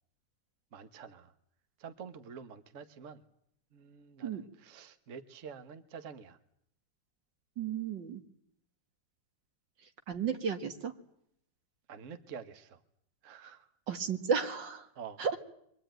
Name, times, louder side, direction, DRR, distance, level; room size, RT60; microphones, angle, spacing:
voice 1, 0.7-1.3 1.8-3.2 3.7-6.4 11.9-12.8 13.2-13.7 15.0-15.2, right 6 dB, 45° right, 9 dB, 1.5 m, -48 dB
voice 2, 7.6-8.2 10.1-10.9 13.9-14.9 15.2-15.4, right 6 dB, 75° right, 6 dB, 2.3 m, -33 dB
24.5 x 19.5 x 9.1 m, 0.72 s
omnidirectional pair, 2.0 m